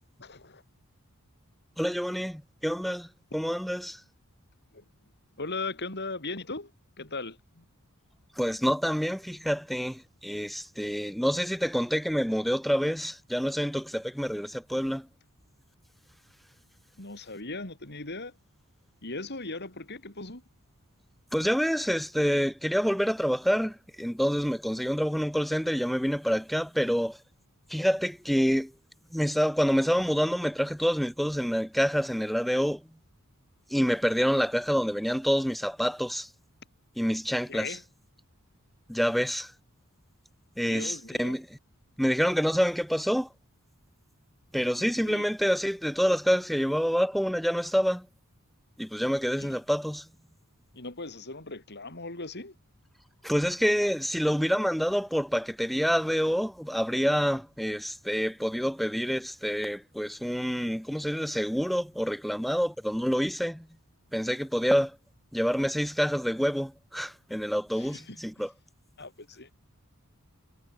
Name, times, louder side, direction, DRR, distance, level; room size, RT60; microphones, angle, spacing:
voice 1, 0.2-0.6 4.7-4.8 5.4-6.7 7.0-7.6 17.0-18.3 19.0-20.4 37.5-37.8 40.7-41.4 45.1-45.2 49.4-49.6 50.7-52.6 67.8-68.2 69.0-69.5, left 3 dB, 50° left, 7.1 m, -38 dB
voice 2, 1.8-4.0 8.4-15.1 21.3-27.2 27.7-28.7 29.1-32.8 33.7-36.3 37.0-37.8 38.9-39.5 40.6-41.6 42.0-43.3 44.5-48.1 48.8-50.1 53.2-63.7 64.1-65.0 65.3-68.5, equal, ahead, 2.2 m, -27 dB
head